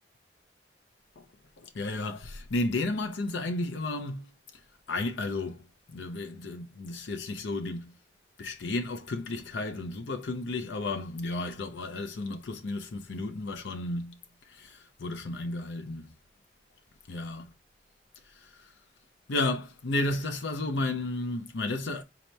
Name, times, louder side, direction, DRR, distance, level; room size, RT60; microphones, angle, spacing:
voice 1, 1.6-4.3 4.9-5.6 5.9-7.9 8.4-14.1 14.5-16.1 17.1-17.4 18.3-18.7 19.3-22.0, left 2 dB, 85° left, 0.6 m, -33 dB
4.1 x 2.9 x 3.2 m
head